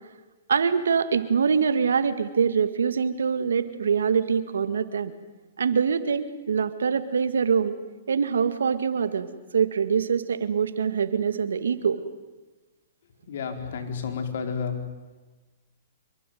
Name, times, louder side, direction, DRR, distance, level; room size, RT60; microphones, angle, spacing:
voice 1, 0.5-5.1 5.6-7.7 8.1-12.0, right 6 dB, 85° right, 12 dB, 2.1 m, -24 dB
voice 2, 13.3-14.8, left 6 dB, 70° left, 6 dB, 4.6 m, -31 dB
26.0 x 23.5 x 9.4 m, 1.2 s
hypercardioid pair, 130°, 0 cm